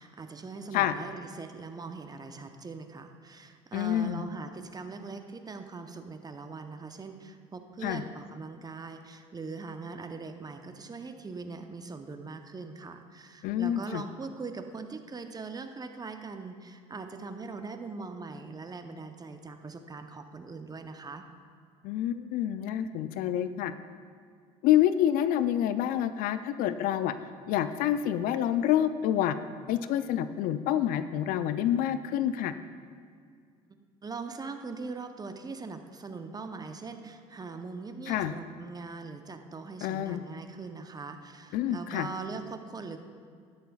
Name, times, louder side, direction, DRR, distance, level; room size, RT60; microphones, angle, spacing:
voice 1, 0.0-21.2 33.7-43.0, right 4 dB, 25° right, 7 dB, 0.8 m, -41 dB
voice 2, 3.7-4.2 7.8-8.0 13.4-14.0 21.8-23.7 24.6-27.1 27.5-29.4 29.7-32.5 38.1-38.3 39.8-40.2 41.5-42.1, left 11 dB, 65° left, 12 dB, 0.5 m, -27 dB
12.0 x 10.0 x 2.4 m, 2.2 s
hypercardioid pair, 65°, 16 cm